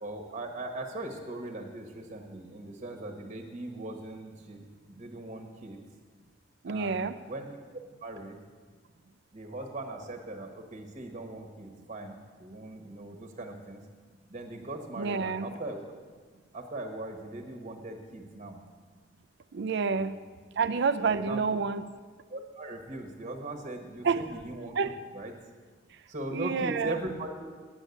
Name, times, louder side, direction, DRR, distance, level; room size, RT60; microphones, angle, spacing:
voice 1, 0.0-5.8 6.7-7.5 8.0-8.4 9.3-13.8 14.3-15.8 16.5-18.6 19.9-20.1 21.0-21.4 22.3-24.8 25.1-25.3 26.1-27.5, right 2 dB, 40° right, 4 dB, 1.3 m, -39 dB
voice 2, 6.6-7.2 15.0-15.5 19.5-20.2 20.6-21.9 24.0-24.3 24.8-24.9 26.3-26.9, right 5 dB, 65° right, 13 dB, 0.5 m, -28 dB
9.6 x 8.1 x 8.3 m, 1.5 s
head